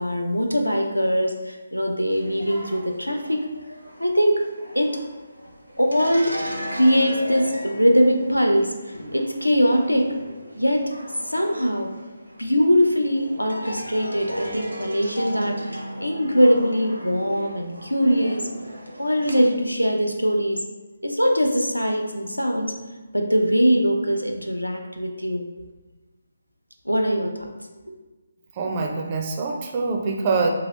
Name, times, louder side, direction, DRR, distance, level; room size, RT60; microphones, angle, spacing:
voice 1, 0.0-3.4 4.0-4.4 4.7-5.0 5.8-6.3 6.7-10.1 10.6-10.9 11.3-11.9 12.4-18.4 19.0-20.6 21.0-22.7 23.1-25.6 26.9-27.5 27.9-28.0, equal, 90° left, 3 dB, 0.5 m, -22 dB
sound 1, 2.1-19.5, equal, 85° right, 0.7 m, -37 dB
voice 2, 28.5-30.5, right 4 dB, 25° right, 1 dB, 0.4 m, -24 dB
2.9 x 2.8 x 2.9 m, 1.2 s
figure-of-eight pair, 145°, 0 cm